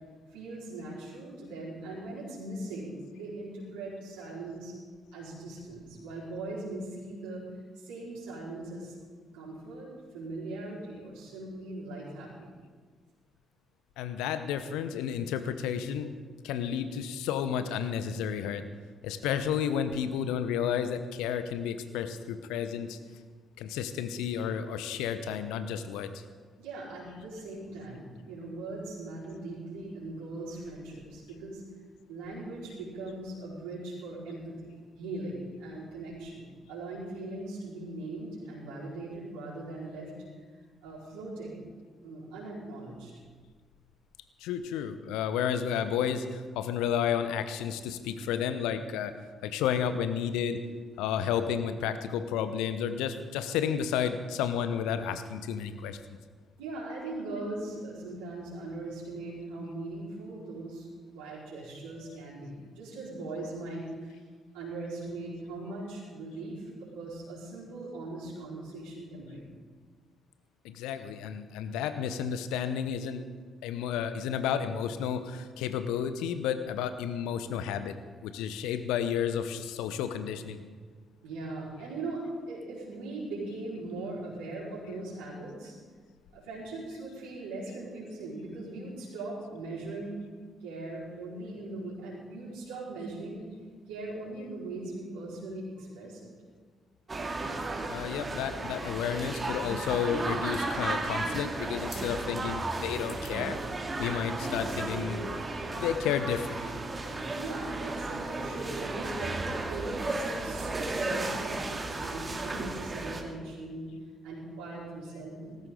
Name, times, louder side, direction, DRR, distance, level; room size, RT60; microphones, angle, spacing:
voice 1, 0.3-4.7 5.1-7.4 7.8-8.9 9.3-9.9 10.1-12.5 26.6-31.6 32.1-40.1 40.8-41.6 42.0-43.1 56.6-60.9 61.1-64.2 64.5-69.5 81.2-85.8 86.3-90.1 90.6-93.4 93.9-96.3 107.4-113.9 114.2-115.6, right 2 dB, 70° right, -8 dB, 4.7 m, -40 dB
voice 2, 14.0-16.1 16.4-18.6 19.0-23.0 23.6-26.1 44.4-49.1 49.4-50.6 51.0-56.2 62.0-62.2 70.6-73.2 73.6-78.0 78.2-80.6 97.9-103.6 104.0-105.2 105.5-106.7, left 8 dB, 70° left, 10 dB, 0.9 m, -31 dB
sound 1, 97.1-113.2, right 2 dB, 30° right, 2.4 m, -34 dB
18.5 x 16.5 x 3.9 m, 1.5 s
figure-of-eight pair, 40°, 0 cm